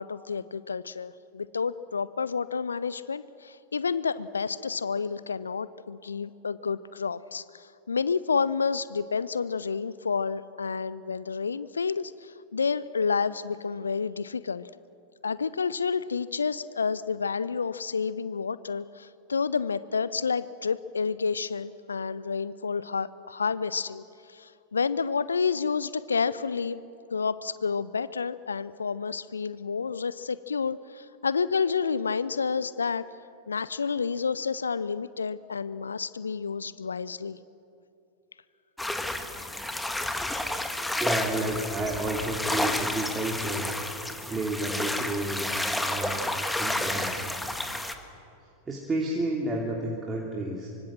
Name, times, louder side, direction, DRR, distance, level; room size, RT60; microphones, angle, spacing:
voice 1, 0.0-14.7 15.2-26.8 27.1-33.1 33.5-37.4, left 5 dB, 75° left, 17 dB, 0.5 m, -30 dB
sound 1, 38.8-47.9, left 1 dB, 5° left, 1.7 m, -31 dB
voice 2, 41.0-43.7 44.3-47.3 48.7-50.7, right 2 dB, 15° right, -2 dB, 2.9 m, -31 dB
25.0 x 25.0 x 7.6 m, 2.7 s
figure-of-eight pair, 90°, 0 cm